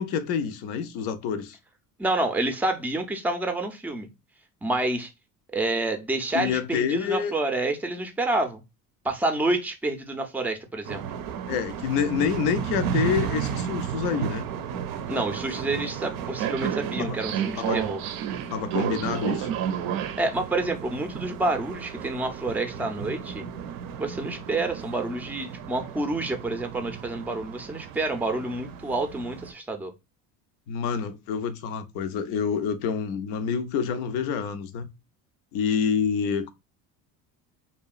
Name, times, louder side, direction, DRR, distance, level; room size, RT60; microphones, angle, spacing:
voice 1, 0.0-1.6 6.3-7.3 11.5-14.5 17.0-17.2 17.6-17.8 18.5-19.5 30.7-34.9 35.5-36.5, left 7 dB, 80° left, 0.6 m, -27 dB
voice 2, 2.0-4.1 4.6-5.1 5.5-8.6 9.0-11.0 15.1-18.0 20.2-23.4 24.0-29.9, right 2 dB, 5° right, 0.4 m, -28 dB
sound 1, 10.9-29.5, right 9 dB, 65° right, 0.5 m, -32 dB
2.8 x 2.2 x 2.3 m
supercardioid pair, 100°, 38 cm